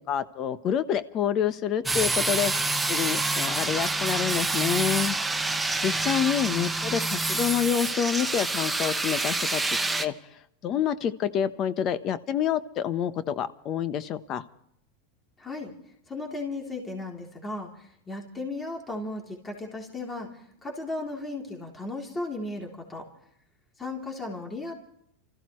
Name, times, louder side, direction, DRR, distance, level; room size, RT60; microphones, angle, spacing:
voice 1, 0.1-2.5 2.9-5.2 5.8-10.1 10.6-14.4, left 9 dB, 40° left, 13 dB, 1.1 m, -27 dB
sound 1, 1.9-10.1, right 2 dB, 5° right, 1.0 m, -27 dB
voice 2, 15.4-15.7 16.1-23.1 23.8-24.7, left 2 dB, 20° left, 0 dB, 3.5 m, -35 dB
29.5 x 14.5 x 3.2 m, 0.71 s
hypercardioid pair, 110°, 0 cm